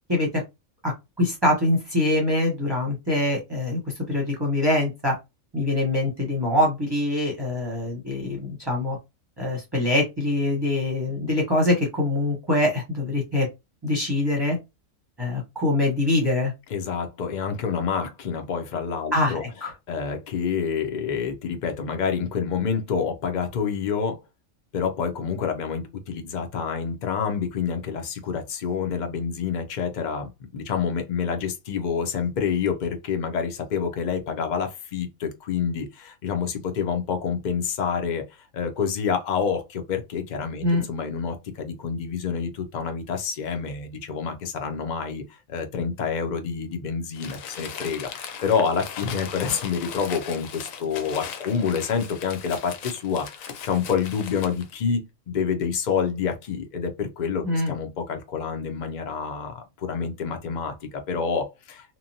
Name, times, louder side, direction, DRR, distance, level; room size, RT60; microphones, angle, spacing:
voice 1, 0.1-0.4 0.8-5.2 5.5-9.0 9.4-13.5 13.8-14.6 15.2-16.5 19.1-19.7 40.6-40.8 57.4-57.7, left 1 dB, 20° right, 0.8 m, -24 dB
voice 2, 16.7-19.4 19.9-24.2 24.7-38.2 38.5-62.0, left 6 dB, 55° left, 0.5 m, -28 dB
Crumpling crinkling, 47.1-54.7, left 7 dB, 80° left, 1.0 m, -38 dB
2.9 x 2.2 x 2.6 m
omnidirectional pair, 1.4 m